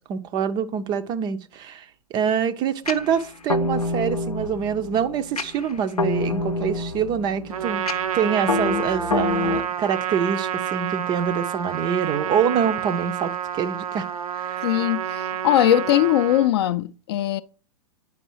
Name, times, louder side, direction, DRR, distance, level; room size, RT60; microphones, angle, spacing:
voice 1, 0.1-1.9 2.1-7.9 8.1-14.1 14.3-14.7, right 7 dB, 25° right, 0.5 m, -25 dB
sound 1, 2.9-9.6, left 2 dB, 85° left, 0.7 m, -27 dB
Trumpet, 7.5-16.5, right 9 dB, 75° right, 0.6 m, -29 dB
voice 2, 14.6-17.4, left 12 dB, 45° left, 0.4 m, -20 dB
9.2 x 5.2 x 2.9 m
figure-of-eight pair, 105°, 19 cm